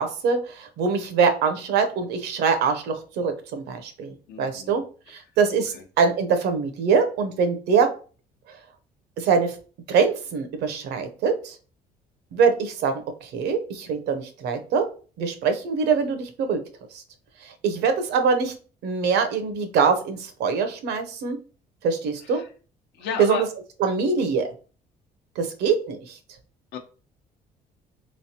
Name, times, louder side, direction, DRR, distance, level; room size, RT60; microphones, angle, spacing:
voice 1, 0.0-4.1 4.4-4.8 5.1-7.9 9.2-9.5 9.9-11.5 12.3-14.9 15.2-16.6 17.4-18.5 18.8-21.4 21.8-22.4 23.2-23.5 23.8-24.5 25.4-26.2, right 5 dB, 75° right, 7 dB, 0.7 m, -23 dB
voice 2, 4.3-4.8 5.7-5.8 22.3-22.5 23.0-23.4 26.7-26.8, left 6 dB, 75° left, 6 dB, 0.7 m, -32 dB
3.4 x 3.1 x 2.8 m, 0.38 s
cardioid pair, 110°, 17 cm